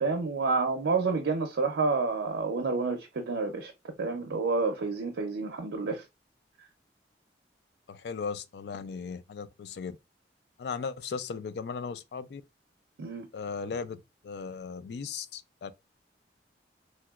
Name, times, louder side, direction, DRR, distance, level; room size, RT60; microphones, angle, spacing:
voice 1, 0.0-6.0 13.0-13.3, right 4 dB, 90° right, 0.5 m, -29 dB
voice 2, 7.9-10.0 10.6-12.4 13.3-15.7, left 5 dB, 65° left, 0.3 m, -37 dB
3.2 x 2.8 x 2.3 m
head